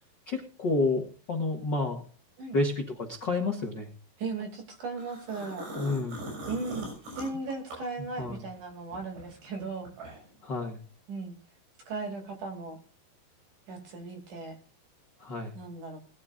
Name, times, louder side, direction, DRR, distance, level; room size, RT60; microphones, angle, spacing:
voice 1, 0.3-2.0 2.5-3.9 5.8-6.3 8.2-8.4 10.4-10.8 15.2-15.5, left 3 dB, 45° left, 2 dB, 1.4 m, -30 dB
voice 2, 4.2-5.7 6.5-10.0 11.1-11.4 11.9-12.8 13.7-14.6 15.5-16.0, right 3 dB, 50° right, 3 dB, 3.9 m, -37 dB
sound 1, 5.0-8.5 8.9-10.4, right 1 dB, 90° right, 8.6 m, -41 dB
21.0 x 12.0 x 2.6 m, 0.41 s
omnidirectional pair, 4.8 m